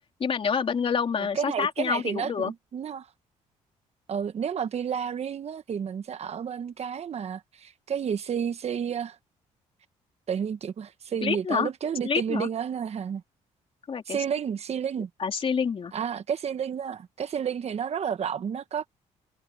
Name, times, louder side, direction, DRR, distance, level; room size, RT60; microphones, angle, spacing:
voice 1, 0.2-2.5 11.2-11.7 12.0-12.5 13.9-14.2 15.2-15.9, left 6 dB, 45° left, 3.5 m, -27 dB
voice 2, 1.2-3.1 4.1-9.2 10.3-13.2 14.1-15.1 15.9-18.9, right 7 dB, 55° right, 1.4 m, -31 dB
cardioid pair, 80°, 13 cm